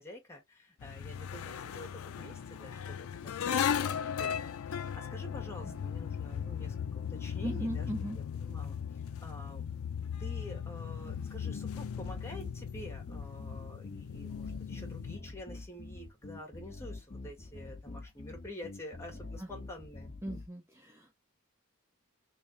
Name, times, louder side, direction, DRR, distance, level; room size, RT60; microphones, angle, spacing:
voice 1, 0.0-7.9 8.3-9.8 10.2-20.1, left 1 dB, 15° left, 1.6 m, -48 dB
sound 1, 0.8-15.2, left 8 dB, 90° left, 0.4 m, -37 dB
voice 2, 7.4-8.2 19.4-19.5 20.2-21.1, right 1 dB, 15° right, 0.6 m, -38 dB
sound 2, 11.0-20.5, left 2 dB, 40° left, 1.2 m, -46 dB
3.4 x 3.2 x 2.7 m
head